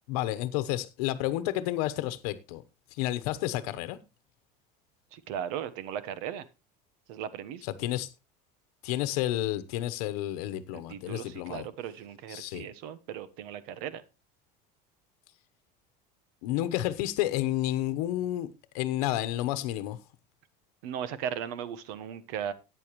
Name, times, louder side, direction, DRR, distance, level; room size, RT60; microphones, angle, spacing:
voice 1, 0.1-2.6 2.9-4.0 7.6-8.1 8.8-11.7 12.3-12.6 16.4-18.5 18.7-20.0, left 14 dB, 80° left, 1.0 m, -30 dB
voice 2, 5.1-6.4 7.1-7.6 10.7-14.0 20.8-22.5, right 9 dB, 75° right, 1.2 m, -37 dB
14.0 x 9.4 x 3.1 m
cardioid pair, 150°, 19 cm